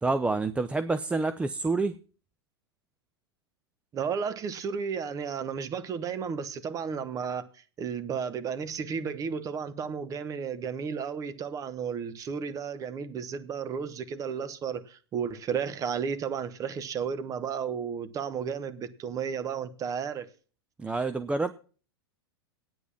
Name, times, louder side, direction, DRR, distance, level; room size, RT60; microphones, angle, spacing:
voice 1, 0.0-2.0 20.8-21.5, right 3 dB, 10° right, 0.4 m, -28 dB
voice 2, 3.9-7.4 7.8-20.3, right 6 dB, 25° right, 1.0 m, -33 dB
9.1 x 8.2 x 7.2 m
figure-of-eight pair, 95°, 14 cm